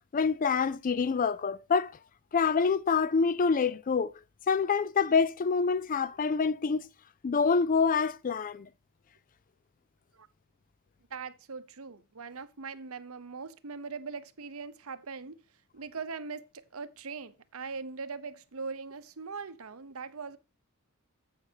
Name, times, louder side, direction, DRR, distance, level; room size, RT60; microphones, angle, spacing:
voice 1, 0.1-1.9 2.3-4.1 4.5-6.9 7.2-8.7, left 5 dB, 40° left, 0.4 m, -26 dB
voice 2, 11.1-15.4 15.7-20.4, right 5 dB, 80° right, 0.9 m, -41 dB
11.0 x 8.3 x 2.9 m
head